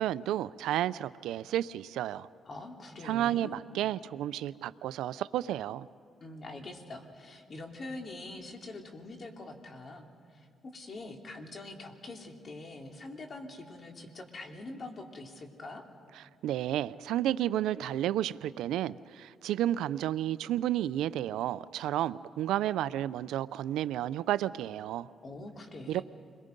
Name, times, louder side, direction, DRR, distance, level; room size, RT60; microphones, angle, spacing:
voice 1, 0.0-2.3 3.0-5.9 16.2-25.1 25.9-26.0, right 12 dB, 90° right, 0.5 m, -31 dB
voice 2, 2.4-3.6 6.2-10.5 10.7-15.8 25.2-26.0, left 2 dB, 45° left, 3.0 m, -44 dB
30.0 x 22.5 x 5.3 m
cardioid pair, 90°, 0 cm